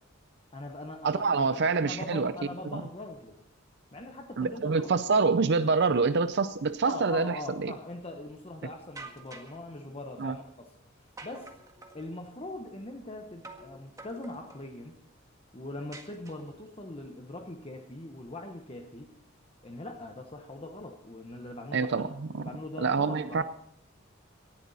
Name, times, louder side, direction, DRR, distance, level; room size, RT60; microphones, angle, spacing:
voice 1, 0.5-3.4 3.9-4.9 6.8-10.7 11.2-11.5 11.9-15.0 15.5-19.1 19.6-22.1 22.3-23.4, left 2 dB, 30° left, 3 dB, 1.1 m, -41 dB
voice 2, 1.0-2.3 2.7-2.8 4.4-7.7 10.2-10.3 21.7-22.5 22.8-23.4, right 4 dB, 55° right, 12 dB, 0.5 m, -26 dB
sound 1, 9.0-9.6 11.2-12.1 13.4-13.7 14.0-14.7 15.9-16.7, right 2 dB, 15° right, 1.8 m, -47 dB
18.5 x 13.5 x 4.1 m, 0.70 s
head